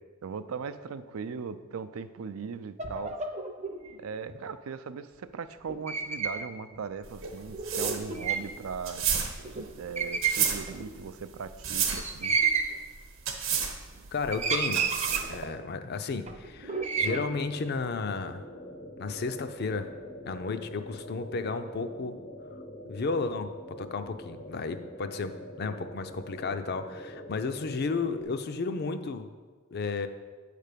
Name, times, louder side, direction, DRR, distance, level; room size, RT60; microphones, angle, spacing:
voice 1, 0.2-3.2 4.0-9.0 9.8-12.4, right 6 dB, 90° right, 12 dB, 0.4 m, -38 dB
sound 1, 2.8-4.0 5.7-6.4 6.7-6.8 7.5-8.6 9.1-9.2 9.4-9.7 10.0-10.9 11.9-12.8 13.5-14.0 14.3-15.5 16.3-17.2, right 5 dB, 35° right, 0.6 m, -31 dB
sound 2, 7.0-15.4, right 7 dB, 65° right, 0.9 m, -32 dB
voice 2, 14.1-14.9 15.3-18.4 19.0-19.9 20.2-22.2 22.9-29.3 29.7-30.1, left 4 dB, 50° left, 9 dB, 0.5 m, -33 dB
sound 3, 16.9-28.2, equal, 80° left, 1.0 m, -45 dB
9.0 x 3.3 x 6.6 m, 1.4 s
head